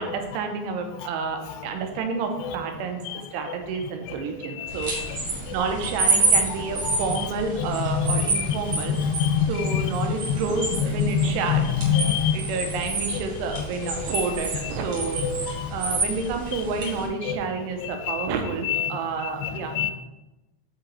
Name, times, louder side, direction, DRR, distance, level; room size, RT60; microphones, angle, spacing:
voice 1, 0.0-3.0 3.3-4.9 5.2-9.0 9.4-11.7 12.3-15.2 15.5-19.7, right 4 dB, 90° right, 4 dB, 2.9 m, -29 dB
voice 2, 4.6-5.1 6.6-7.0 8.0-8.1 8.4-8.5 9.0-9.9 10.3-10.4 11.1-12.3 14.0-14.1 15.2-15.7 17.3-17.4 17.8-18.3 18.6-18.9 19.4-19.5 19.8-19.9, left 8 dB, 85° left, 10 dB, 2.7 m, -25 dB
sound 1, 4.7-17.1, right 3 dB, 45° right, 3.2 m, -29 dB
8.0 x 4.0 x 4.2 m, 1.0 s
omnidirectional pair, 4.8 m